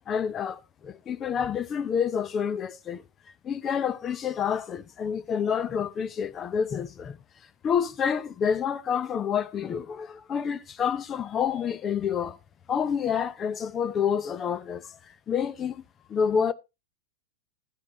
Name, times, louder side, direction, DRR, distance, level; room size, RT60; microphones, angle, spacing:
voice 1, 0.1-3.0 3.4-7.2 7.6-12.4 12.7-15.0 15.3-15.8 16.1-16.5, left 7 dB, 25° left, 0.7 m, -28 dB
14.0 x 9.6 x 3.1 m
figure-of-eight pair, 90°, 0 cm